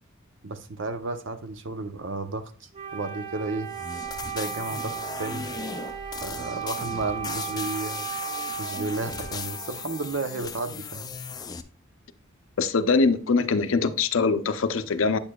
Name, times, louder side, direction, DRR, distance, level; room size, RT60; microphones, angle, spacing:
voice 1, 0.4-3.7 4.3-5.5 6.2-8.1 8.6-11.1, right 3 dB, 60° right, 0.7 m, -33 dB
Wind instrument woodwind instrument, 2.7-10.5, right 8 dB, 25° right, 0.8 m, -36 dB
sound 1, 3.7-11.6, left 6 dB, 20° left, 0.3 m, -37 dB
voice 2, 12.6-15.2, left 4 dB, 65° left, 0.5 m, -23 dB
8.7 x 6.6 x 2.2 m
head